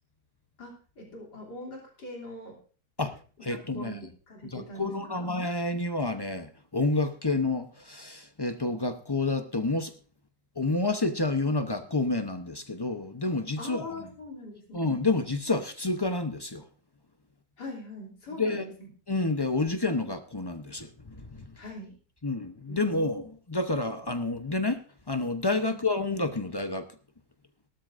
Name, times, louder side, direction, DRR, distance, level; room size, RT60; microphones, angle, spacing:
voice 1, 0.6-2.6 3.5-5.2 13.6-14.8 17.6-18.9 21.6-21.9 22.7-23.2 25.6-25.8, left 1 dB, 75° left, 3.8 m, -42 dB
voice 2, 3.0-4.0 4.5-9.9 10.6-14.1 14.7-16.6 18.4-18.7 19.1-21.6 22.2-26.9, left 2 dB, 25° left, 0.6 m, -29 dB
18.0 x 12.5 x 2.6 m
omnidirectional pair, 1.8 m